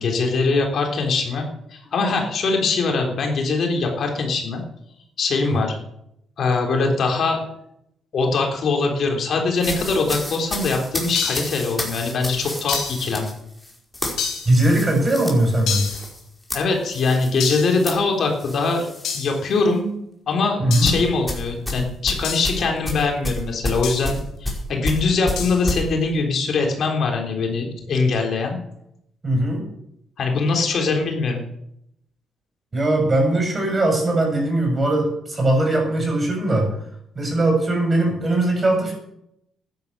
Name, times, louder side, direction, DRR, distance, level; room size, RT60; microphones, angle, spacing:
voice 1, 0.0-4.6 5.2-5.8 6.4-7.4 8.1-13.3 16.5-18.9 19.1-19.9 20.3-28.6 30.2-31.4, left 4 dB, 60° left, 2 dB, 3.7 m, -22 dB
sound 1, 9.6-19.2 19.5-19.8 20.8-25.8, left 1 dB, 10° left, 5.0 m, -30 dB
sound 2, 11.1-11.6 12.7-13.1 14.2-14.6 15.7-16.1 17.4-17.8 19.0-19.4 20.7-21.0 22.2-22.6 23.8-24.1 25.4-25.6, left 7 dB, 80° left, 4.1 m, -28 dB
voice 2, 14.5-15.9 20.6-20.9 29.2-29.6 32.7-36.7 37.2-38.9, right 1 dB, 30° right, 2 dB, 7.1 m, -20 dB
12.5 x 10.5 x 8.4 m, 0.78 s
cardioid pair, 90°, 0 cm